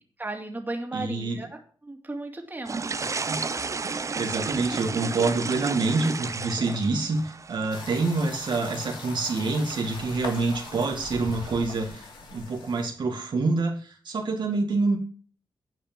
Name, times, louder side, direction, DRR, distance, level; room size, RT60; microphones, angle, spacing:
voice 1, 0.2-2.8, right 2 dB, 20° right, 3 dB, 2.4 m, -35 dB
voice 2, 0.9-1.4 3.1-3.4 3.8-15.0, right 3 dB, 70° right, 2 dB, 2.0 m, -27 dB
sound 1, 2.7-11.6, right 4 dB, 40° right, 0.6 m, -34 dB
sound 2, 7.7-12.9, left 4 dB, 85° left, 2.8 m, -41 dB
10.0 x 5.2 x 7.4 m, 0.42 s
cardioid pair, 65°, 8 cm